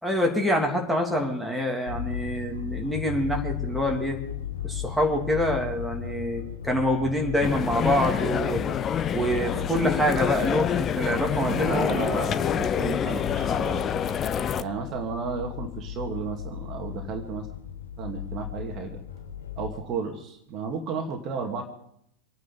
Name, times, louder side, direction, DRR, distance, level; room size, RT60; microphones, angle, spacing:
voice 1, 0.0-4.2 4.6-8.6 9.1-12.0, equal, ahead, 0 dB, 3.1 m, -26 dB
sound 1, 1.9-19.7, left 10 dB, 70° left, 1.8 m, -37 dB
sound 2, 7.4-14.6, left 8 dB, 25° left, 0.7 m, -27 dB
voice 2, 11.3-13.9 14.6-17.5 18.0-19.0 19.6-21.6, right 5 dB, 35° right, 3 dB, 2.4 m, -33 dB
26.0 x 9.7 x 5.3 m, 0.70 s
figure-of-eight pair, 90°, 0 cm